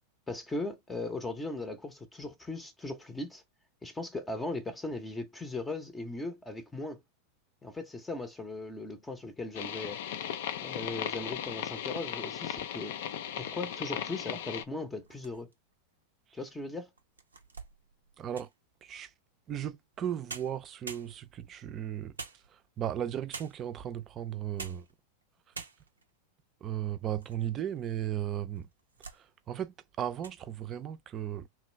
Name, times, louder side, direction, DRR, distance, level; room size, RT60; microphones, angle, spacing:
voice 1, 0.3-3.4 3.8-7.0 7.6-10.0 10.6-13.0 13.4-15.5 16.3-16.9, left 2 dB, 15° left, 0.7 m, -38 dB
sound 1, 9.5-14.6, left 9 dB, 65° left, 0.5 m, -37 dB
sound 2, 15.0-15.7 16.3-16.4 17.0-18.7 19.9-20.0 20.3-21.5 22.2-22.9 23.3-23.8 24.4-24.9 25.2-25.3 25.5-26.1 26.7-27.5 27.8-27.9 28.6-29.2 29.6-29.8 30.1-30.4, right 4 dB, 90° right, 0.5 m, -46 dB
voice 2, 18.2-18.5 18.8-19.1 19.5-22.1 22.8-24.9 26.6-28.7 29.5-31.5, right 10 dB, 35° right, 0.5 m, -35 dB
3.1 x 2.3 x 3.2 m
hypercardioid pair, 95°, 0 cm